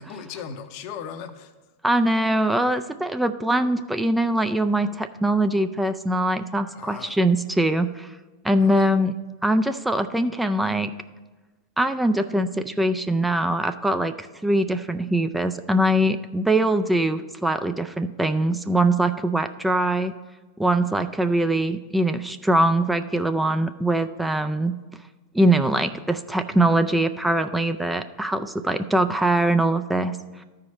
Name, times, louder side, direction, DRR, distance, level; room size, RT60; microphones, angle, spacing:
voice 1, 0.0-1.5 3.0-3.1 6.8-7.2 8.6-8.9, left 7 dB, 55° left, 9 dB, 0.8 m, -38 dB
voice 2, 1.8-8.1 8.4-9.1 9.4-10.9 11.8-20.1 20.6-24.7 25.3-30.2, right 1 dB, 5° right, 9 dB, 0.4 m, -22 dB
13.0 x 4.8 x 4.3 m, 1.3 s
hypercardioid pair, 100°, 0 cm